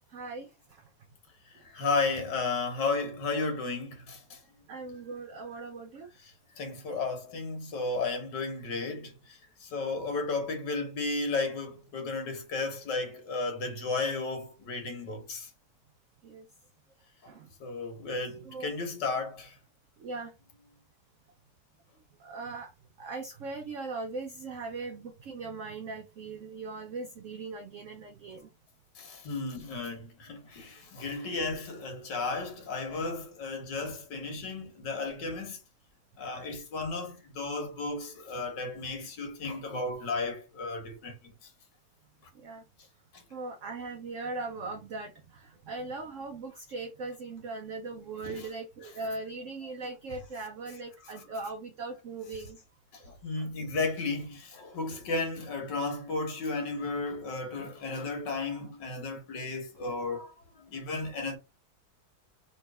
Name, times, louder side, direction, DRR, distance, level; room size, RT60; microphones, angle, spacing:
voice 1, 0.1-0.9 1.5-1.6 4.7-6.1 16.2-16.5 17.3-17.5 18.5-18.7 20.0-20.3 22.2-22.7 23.0-28.5 42.3-42.6 43.3-52.6 53.0-53.1, right 3 dB, 60° right, 0.8 m, -39 dB
voice 2, 1.7-4.4 6.2-15.5 17.6-19.6 29.0-35.6 36.2-41.3 43.1-43.2 48.2-48.4 53.1-60.3 60.6-61.4, left 3 dB, 80° left, 1.9 m, -34 dB
3.7 x 2.8 x 4.7 m
omnidirectional pair, 1.9 m